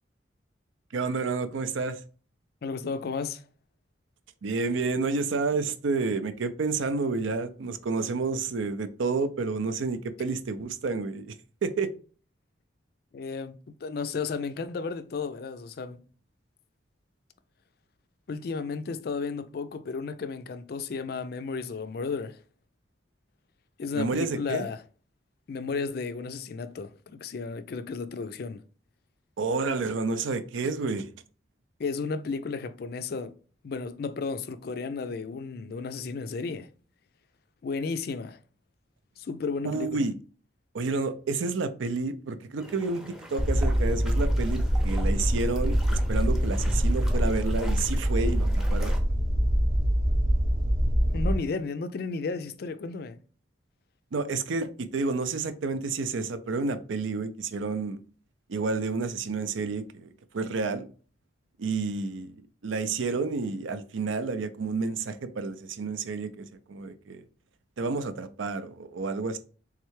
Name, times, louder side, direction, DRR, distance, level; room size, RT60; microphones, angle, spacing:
voice 1, 0.9-2.0 4.4-11.3 11.6-11.9 23.9-24.7 29.4-31.1 39.6-40.1 40.7-43.0 43.3-49.0 54.1-58.0 58.5-60.9 61.6-67.2 67.8-69.4, right 4 dB, 85° right, 0.5 m, -30 dB
voice 2, 2.6-3.4 13.1-16.0 18.3-22.4 23.8-24.8 25.5-28.6 31.8-33.3 33.6-36.7 37.6-38.4 39.2-40.1 51.1-53.2, left 4 dB, 55° left, 0.3 m, -33 dB
sound 1, 42.6-49.0, equal, 5° right, 0.5 m, -44 dB
sound 2, 43.4-51.4, equal, 50° right, 0.8 m, -24 dB
3.6 x 3.2 x 3.1 m
head